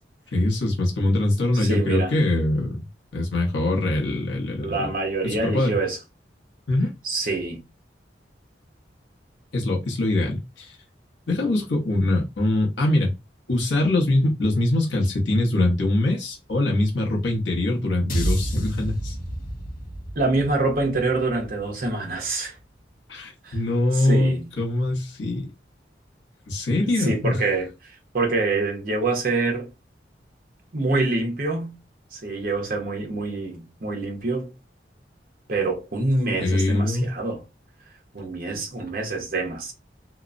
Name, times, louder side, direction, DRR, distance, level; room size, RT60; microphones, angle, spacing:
voice 1, 0.3-2.9 3.1-4.9 5.2-5.7 6.7-6.9 9.5-10.7 11.3-13.1 13.5-19.2 23.1-25.5 26.5-27.4 36.4-37.1, left 1 dB, 80° left, 0.8 m, -23 dB
voice 2, 1.5-2.2 4.6-6.0 7.0-7.6 20.1-22.6 23.4-23.6 23.9-24.5 26.8-29.7 30.7-31.8 32.1-34.5 35.5-37.4 38.1-39.7, right 3 dB, 50° right, 0.9 m, -26 dB
sound 1, 18.1-22.4, right 1 dB, 50° left, 0.6 m, -30 dB
2.9 x 2.0 x 2.5 m
head